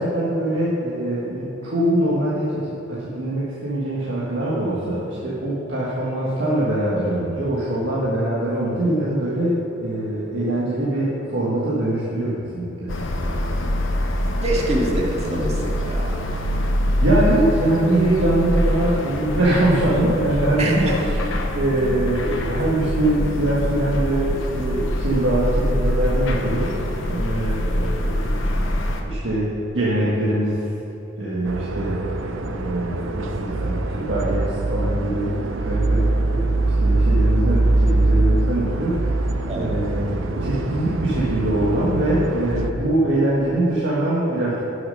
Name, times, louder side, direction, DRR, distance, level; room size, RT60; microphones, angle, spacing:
voice 1, 0.0-13.8 16.3-16.6 17.0-21.3 21.5-26.7 27.0-28.7 29.0-30.5 31.2-44.6, right 1 dB, 65° right, -8 dB, 1.6 m, -23 dB
sound 1, 12.9-29.0, equal, 80° left, 0.9 m, -24 dB
voice 2, 14.4-16.2 20.6-20.9 39.5-39.7, right 1 dB, 35° right, -3 dB, 1.8 m, -25 dB
sound 2, 31.4-42.7, right 2 dB, 85° right, 0.6 m, -23 dB
11.0 x 6.8 x 5.5 m, 2.8 s
head